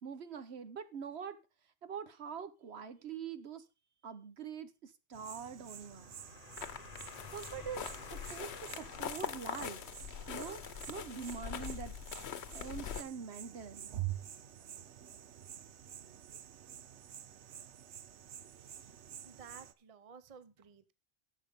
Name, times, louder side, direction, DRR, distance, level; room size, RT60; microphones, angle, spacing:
voice 1, 0.0-1.4 1.8-3.6 4.0-6.1 7.3-7.8 8.1-9.8 10.3-10.6 10.9-12.0 12.5-13.9, right 6 dB, 70° right, 11 dB, 1.2 m, -44 dB
sound 1, 5.1-19.7, right 12 dB, 90° right, 1.1 m, -48 dB
sound 2, 5.6-10.3, left 5 dB, 40° left, 0.9 m, -53 dB
sound 3, 6.6-13.0, left 8 dB, 75° left, 1.0 m, -43 dB
voice 2, 18.6-18.9 19.2-20.9, right 6 dB, 35° right, 13 dB, 0.8 m, -55 dB
11.0 x 7.6 x 5.2 m, 0.30 s
omnidirectional pair, 1.1 m